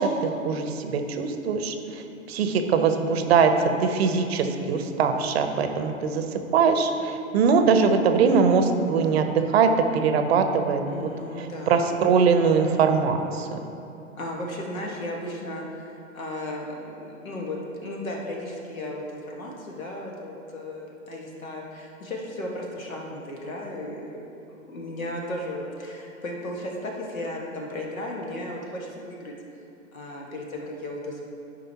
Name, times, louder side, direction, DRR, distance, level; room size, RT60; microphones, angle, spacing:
voice 1, 0.0-2.0 2.3-3.5 3.8-6.2 6.5-11.1 11.4-13.6, right 5 dB, 50° right, 7 dB, 0.7 m, -22 dB
voice 2, 10.9-11.9 14.1-24.2 24.6-29.3 29.9-31.2, left 1 dB, 85° left, -1 dB, 1.7 m, -35 dB
12.0 x 5.2 x 2.9 m, 2.8 s
hypercardioid pair, 120°, 40 cm